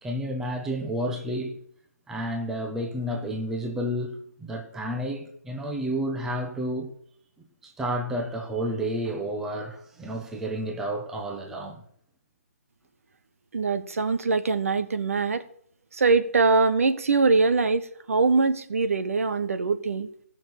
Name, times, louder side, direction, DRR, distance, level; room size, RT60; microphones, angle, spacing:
voice 1, 0.0-1.6 2.1-6.9 7.6-11.8, equal, 5° right, 1.0 m, -31 dB
voice 2, 13.5-15.4 15.9-20.1, right 4 dB, 60° right, 1.2 m, -23 dB
17.0 x 6.3 x 6.5 m
figure-of-eight pair, 155°, 8 cm